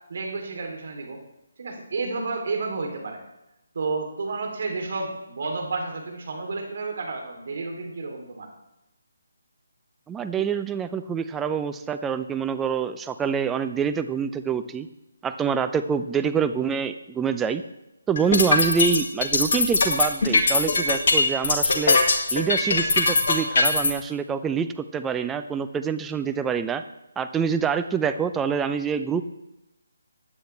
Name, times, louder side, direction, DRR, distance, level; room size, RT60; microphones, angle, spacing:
voice 1, 0.1-1.2 1.6-3.2 3.7-8.5, right 3 dB, 55° right, 3 dB, 3.2 m, -31 dB
voice 2, 10.1-14.9 15.2-17.6 18.1-22.0 22.3-26.8 27.2-29.2, right 6 dB, 10° right, 9 dB, 0.6 m, -26 dB
sound 1, 18.2-23.9, left 3 dB, 50° left, 2.1 m, -20 dB
15.5 x 10.0 x 3.4 m, 0.93 s
figure-of-eight pair, 150°, 0 cm